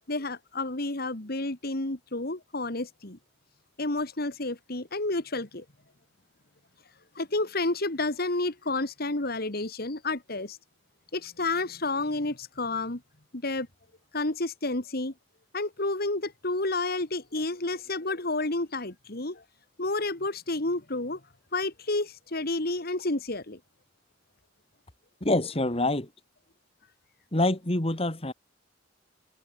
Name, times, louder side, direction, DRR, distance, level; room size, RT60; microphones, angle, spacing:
voice 1, 0.1-3.2 3.8-5.6 7.2-10.6 11.1-13.0 13.3-13.7 14.1-15.1 15.5-19.4 19.8-21.2 21.5-23.6, left 2 dB, 55° left, 2.4 m, -30 dB
voice 2, 25.2-26.1 27.3-28.3, left 2 dB, 30° left, 2.3 m, -26 dB
head